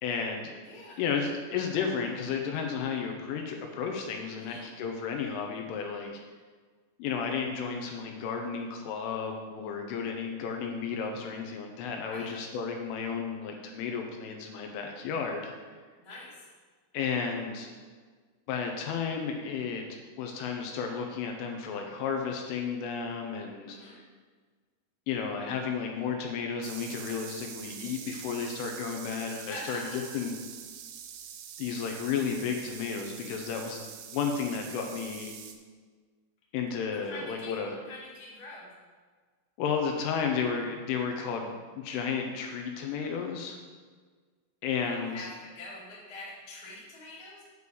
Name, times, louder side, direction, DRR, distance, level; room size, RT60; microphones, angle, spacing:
voice 1, 0.0-0.5 1.0-6.1 7.0-15.5 16.9-17.7 18.5-19.8 20.2-24.0 25.1-30.3 31.6-35.3 36.5-37.7 39.6-43.6 44.6-45.3, left 6 dB, 80° left, 3 dB, 3.1 m, -33 dB
voice 2, 0.6-1.0 4.3-4.7 12.0-12.3 16.0-16.5 23.6-24.0 29.4-30.2 36.9-37.6 37.9-38.7 44.9-47.4, left 2 dB, 45° left, -7 dB, 1.3 m, -44 dB
sound 1, 26.6-35.6, right 9 dB, 85° right, 3.4 m, -45 dB
8.4 x 4.8 x 6.9 m, 1.5 s
omnidirectional pair, 6.0 m